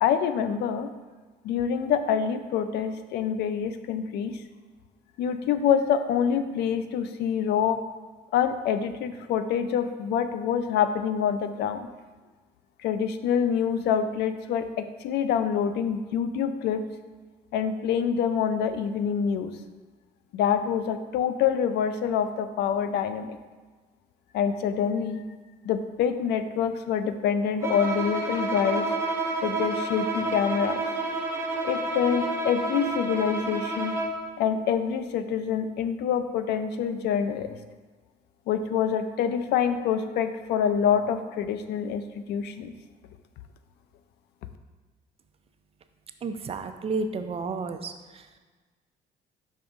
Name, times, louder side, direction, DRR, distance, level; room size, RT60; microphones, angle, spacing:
voice 1, 0.0-0.9 1.4-4.4 5.2-7.8 8.3-11.9 12.8-16.8 17.5-19.5 20.3-23.4 24.3-25.2 25.6-28.9 29.4-30.8 31.6-33.9 34.4-37.6 38.5-42.0 42.3-42.7, left 8 dB, 75° left, 10 dB, 0.4 m, -26 dB
Bowed string instrument, 27.6-34.3, right 2 dB, 15° right, 0.9 m, -29 dB
voice 2, 46.2-47.9, right 4 dB, 35° right, 8 dB, 0.4 m, -31 dB
5.4 x 3.4 x 5.1 m, 1.4 s
cardioid pair, 110°, 17 cm